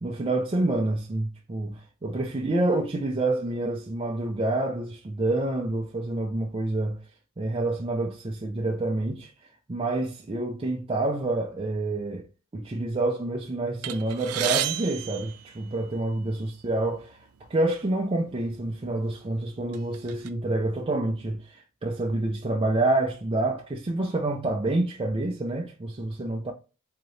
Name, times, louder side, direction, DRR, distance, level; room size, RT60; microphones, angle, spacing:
voice 1, 0.0-7.0 7.4-9.3 9.7-12.3 12.5-26.5, right 2 dB, 25° right, 0.4 m, -28 dB
sound 1, 13.8-16.2 17.0-17.1 17.4-17.6 18.5-18.6 19.1-20.3, right 11 dB, 90° right, 0.5 m, -32 dB
3.8 x 2.9 x 3.1 m
head